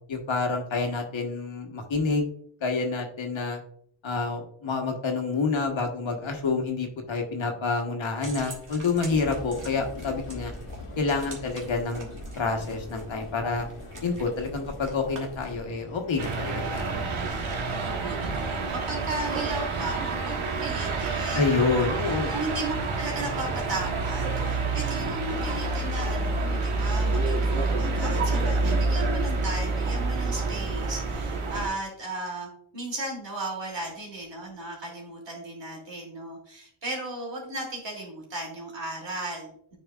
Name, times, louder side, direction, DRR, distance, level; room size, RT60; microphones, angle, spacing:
voice 1, 0.1-2.3 2.6-3.6 4.0-10.5 11.0-12.1 12.4-13.7 14.0-17.1 21.3-22.4, left 4 dB, 65° left, 3 dB, 1.3 m, -28 dB
sound 1, 8.2-15.6, right 2 dB, 40° right, 1.9 m, -44 dB
sound 2, 9.1-17.8, left 2 dB, 85° left, 1.3 m, -43 dB
sound 3, 16.2-31.7, right 3 dB, 75° right, 1.3 m, -28 dB
voice 2, 17.8-39.8, right 2 dB, 60° right, -1 dB, 2.9 m, -36 dB
9.2 x 4.8 x 2.4 m, 0.64 s
wide cardioid pair, 95°, 49 cm